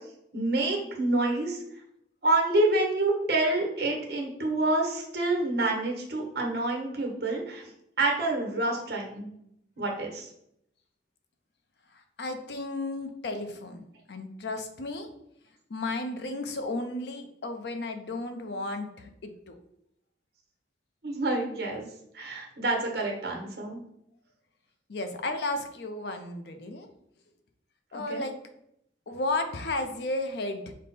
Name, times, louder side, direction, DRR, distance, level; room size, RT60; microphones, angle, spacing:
voice 1, 0.3-1.6 2.2-7.6 8.0-9.3 9.8-10.3 21.0-21.9 22.1-23.8 27.9-28.2, right 2 dB, 65° right, 0 dB, 1.1 m, -27 dB
voice 2, 11.9-15.1 15.7-19.6 24.9-26.9 27.9-28.4 29.1-30.7, left 2 dB, 70° left, 7 dB, 0.5 m, -33 dB
5.2 x 2.1 x 4.2 m, 0.76 s
head